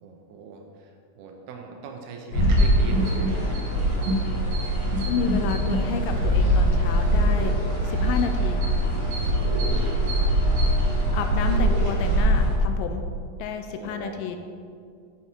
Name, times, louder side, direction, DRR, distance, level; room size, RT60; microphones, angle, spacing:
voice 1, 0.0-4.2 9.4-10.1 13.8-14.2, right 4 dB, 80° right, 2 dB, 2.7 m, -41 dB
sound 1, 2.3-12.6, right 1 dB, 70° left, 3.9 m, -25 dB
sound 2, 2.4-12.2, equal, 60° right, 2.2 m, -25 dB
voice 2, 5.1-8.7 11.1-13.0 13.4-14.4, left 7 dB, 85° left, 6 dB, 1.9 m, -30 dB
9.3 x 7.1 x 4.5 m, 2.2 s
omnidirectional pair, 4.4 m